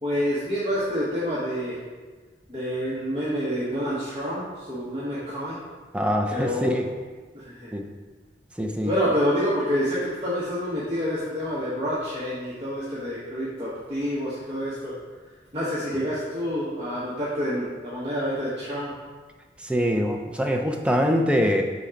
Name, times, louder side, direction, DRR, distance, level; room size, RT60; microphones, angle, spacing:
voice 1, 0.0-1.8 2.5-5.6 6.3-6.8 7.3-7.7 8.8-14.9 15.5-18.9, equal, 30° right, -10 dB, 1.2 m, -28 dB
voice 2, 5.9-6.8 7.7-7.8 8.6-8.9 19.6-21.6, equal, 5° right, 3 dB, 0.4 m, -23 dB
5.0 x 4.1 x 5.7 m, 1.4 s
head